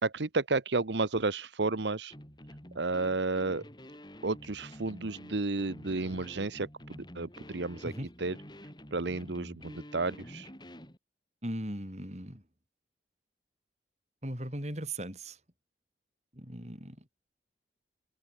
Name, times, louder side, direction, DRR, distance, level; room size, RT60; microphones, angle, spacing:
voice 1, 0.0-2.1 2.7-3.6 4.2-7.9 8.2-8.4 8.9-10.5, right 3 dB, 75° right, 1.1 m, -32 dB
sound 1, 2.1-11.0, equal, 25° left, 5.9 m, -49 dB
voice 2, 11.4-12.4 14.2-15.4 16.3-17.1, right 1 dB, 35° right, 7.4 m, -38 dB
open air
head